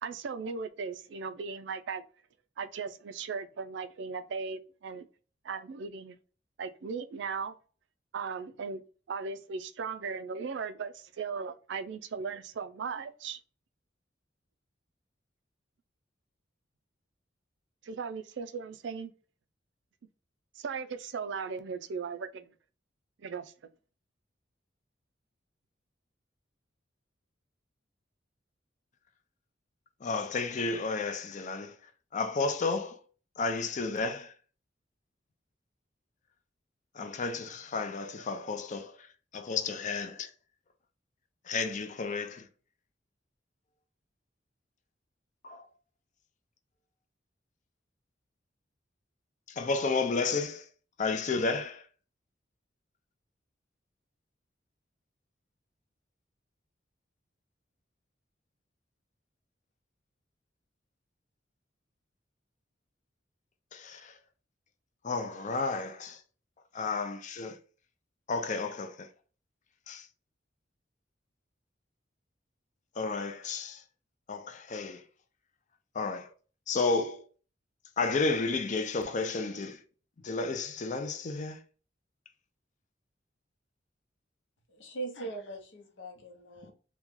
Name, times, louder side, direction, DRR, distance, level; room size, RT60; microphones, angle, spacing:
voice 1, 0.0-2.0 2.6-5.1 5.4-6.2 6.6-7.5 8.1-8.8 9.1-13.4 17.8-19.1 20.6-22.5 23.2-23.5, right 5 dB, 70° right, 0.4 m, -37 dB
voice 2, 30.0-31.7 32.1-33.0 33.4-34.3 36.9-39.0 39.3-40.3 41.5-42.5 45.4-45.7 49.5-50.7 51.0-51.8 63.7-64.1 65.0-66.2 66.7-67.6 68.3-69.1 69.9-70.1 73.0-73.8 74.3-75.0 75.9-76.3 76.7-77.2 78.0-79.8 80.2-81.6, left 4 dB, 40° left, 0.5 m, -32 dB
voice 3, 84.7-86.7, right 3 dB, 80° left, 0.8 m, -41 dB
3.0 x 2.3 x 3.6 m
head